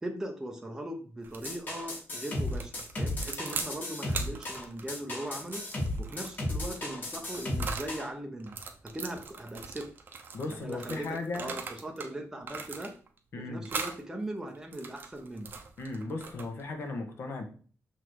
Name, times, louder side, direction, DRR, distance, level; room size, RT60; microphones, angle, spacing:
voice 1, 0.0-5.6 6.0-8.5 8.8-9.9 10.5-11.1 11.3-12.9 13.5-15.5, right 1 dB, 10° right, 0.8 m, -39 dB
sound 1, 1.2-1.6 2.5-3.7 4.1-7.9 8.4-12.1 12.4-13.2 13.7-14.0 14.5-16.7, right 5 dB, 40° right, 0.9 m, -40 dB
sound 2, 1.4-8.1, left 1 dB, 35° left, 1.8 m, -34 dB
voice 2, 10.3-11.5 13.3-13.7 15.8-17.4, left 3 dB, 50° left, 1.4 m, -36 dB
6.5 x 4.0 x 4.6 m
wide cardioid pair, 180°, 5 cm